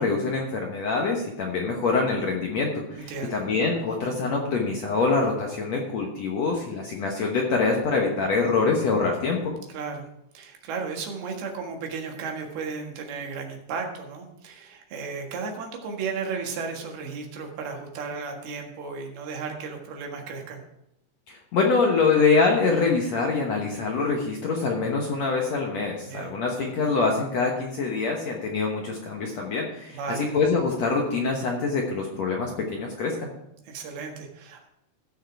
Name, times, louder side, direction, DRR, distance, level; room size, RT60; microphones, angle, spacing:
voice 1, 0.0-9.5 21.3-33.3, left 4 dB, 65° left, 0 dB, 1.7 m, -25 dB
voice 2, 3.0-3.4 9.7-10.1 10.4-20.7 26.0-26.4 29.9-30.3 33.7-34.7, right 5 dB, 75° right, 2 dB, 3.5 m, -34 dB
15.0 x 6.5 x 4.7 m, 0.82 s
omnidirectional pair, 4.6 m